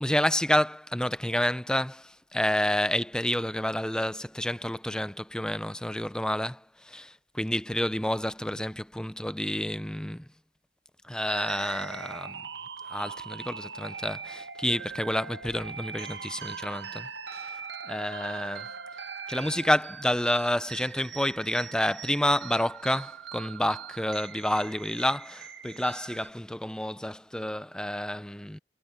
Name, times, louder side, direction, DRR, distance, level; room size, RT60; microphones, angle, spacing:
voice 1, 0.0-10.2 11.1-12.4 12.9-17.1 17.9-18.7 19.3-28.6, left 1 dB, 5° left, 0.6 m, -29 dB
sound 1, 11.3-26.3, right 6 dB, 90° right, 1.4 m, -41 dB
head